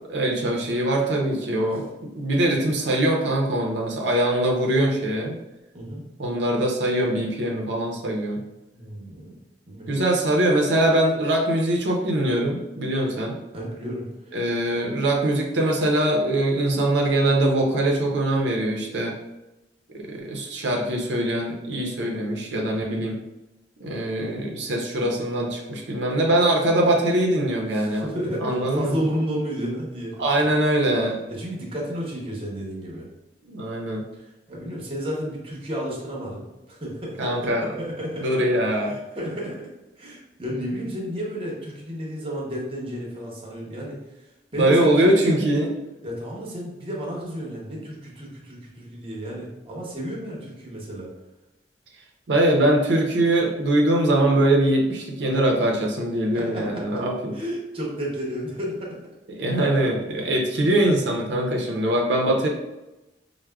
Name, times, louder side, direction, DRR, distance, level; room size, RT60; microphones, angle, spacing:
voice 1, 0.1-1.9 2.1-5.3 6.2-8.4 9.9-13.4 14.3-19.1 20.0-23.1 23.8-28.1 28.4-29.0 30.2-31.2 33.5-34.0 37.2-37.7 38.2-39.0 44.6-45.7 52.3-57.4 59.3-62.5, right 1 dB, 85° right, 0 dB, 0.5 m, -22 dB
voice 2, 8.7-9.4 9.7-9.9 13.5-14.3 22.7-23.0 27.7-30.2 31.3-33.1 34.1-38.5 38.8-45.5 46.0-51.1 56.3-57.0 57.3-59.0, equal, 30° right, -2 dB, 0.8 m, -32 dB
4.6 x 2.1 x 2.2 m, 1.0 s
head